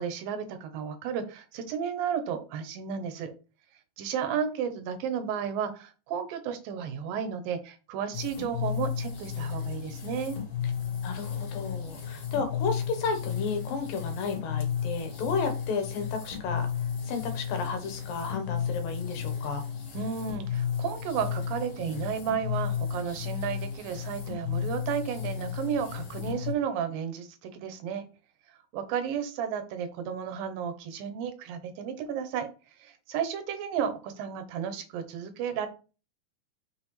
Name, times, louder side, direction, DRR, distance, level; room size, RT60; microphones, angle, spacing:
voice 1, 0.0-3.3 4.0-10.4 19.9-28.0 28.7-32.5 32.8-35.7, right 7 dB, 85° right, 8 dB, 2.6 m, -33 dB
sound 1, 8.1-26.5, left 8 dB, 50° left, 2.8 m, -33 dB
voice 2, 11.0-19.7, left 5 dB, 85° left, 6 dB, 2.9 m, -33 dB
6.1 x 5.3 x 3.2 m, 0.33 s
omnidirectional pair, 4.0 m